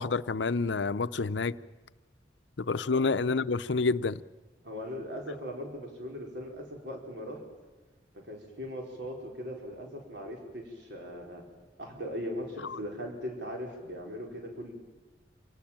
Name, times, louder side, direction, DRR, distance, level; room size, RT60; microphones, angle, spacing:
voice 1, 0.0-1.5 2.6-4.2, left 4 dB, 75° left, 0.7 m, -28 dB
voice 2, 4.6-7.4 8.1-11.5 11.8-14.7, equal, 70° right, 4.8 m, -39 dB
27.0 x 19.0 x 7.5 m
head